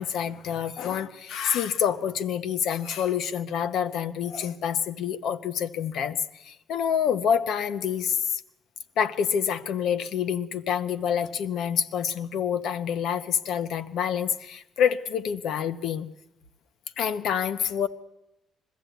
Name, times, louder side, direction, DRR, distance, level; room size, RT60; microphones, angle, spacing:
voice 1, 0.0-8.4 9.0-16.1 17.0-17.9, left 8 dB, 80° left, 11 dB, 1.1 m, -27 dB
21.5 x 15.0 x 9.3 m, 0.87 s
cardioid pair, 90°, 0 cm